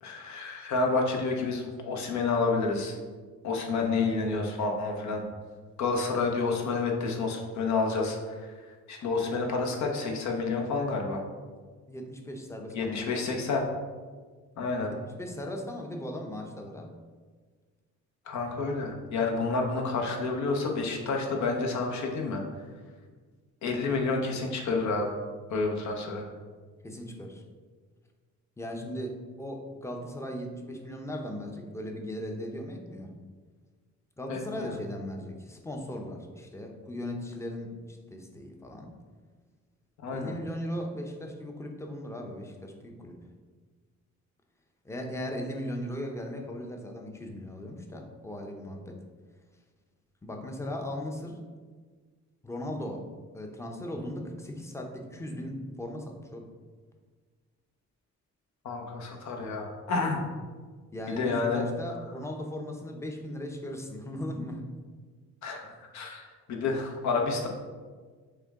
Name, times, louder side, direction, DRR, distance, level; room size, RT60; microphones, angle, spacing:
voice 1, 0.0-2.9 3.4-5.2 5.8-8.5 8.9-11.2 12.7-13.6 14.6-14.9 18.3-22.4 23.6-25.2 25.5-26.3 34.3-34.7 40.0-40.3 58.6-60.2 61.2-61.6 65.4-65.6 65.9-67.5, left 3 dB, 70° left, 1 dB, 0.9 m, -29 dB
voice 2, 3.8-4.1 11.9-13.4 15.2-16.9 26.8-27.4 28.6-33.1 34.2-38.9 40.1-43.2 44.8-49.0 50.2-51.4 52.4-53.1 53.3-56.5 60.9-64.7 65.6-65.7, left 1 dB, 10° left, 2 dB, 0.6 m, -38 dB
6.5 x 2.2 x 3.6 m, 1.5 s
cardioid pair, 90°, 30 cm